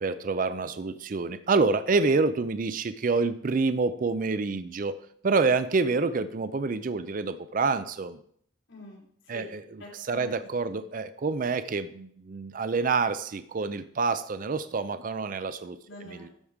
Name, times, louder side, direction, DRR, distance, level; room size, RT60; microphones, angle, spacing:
voice 1, 0.0-4.9 5.2-8.2 9.3-9.6 10.1-15.8 16.2-16.3, right 4 dB, 45° right, 12 dB, 0.4 m, -27 dB
voice 2, 8.7-9.5 9.8-10.3 10.6-10.8 15.8-16.3, left 1 dB, 90° left, -4 dB, 3.9 m, -46 dB
12.5 x 4.8 x 5.1 m, 0.64 s
head